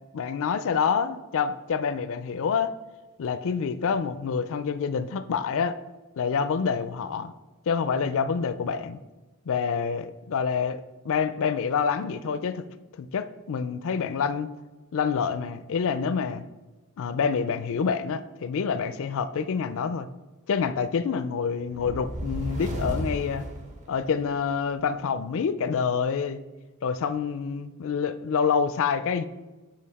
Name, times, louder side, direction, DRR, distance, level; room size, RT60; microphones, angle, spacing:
voice 1, 0.1-2.7 3.2-5.8 6.2-7.3 7.7-9.0 9.5-12.6 13.0-14.5 14.9-16.4 17.0-20.1 20.5-23.5 23.9-26.4 26.8-29.2, left 6 dB, 65° left, 12 dB, 0.4 m, -27 dB
sound 1, 21.7-24.4, equal, 35° right, 0.9 m, -33 dB
7.6 x 5.2 x 4.1 m, 1.2 s
head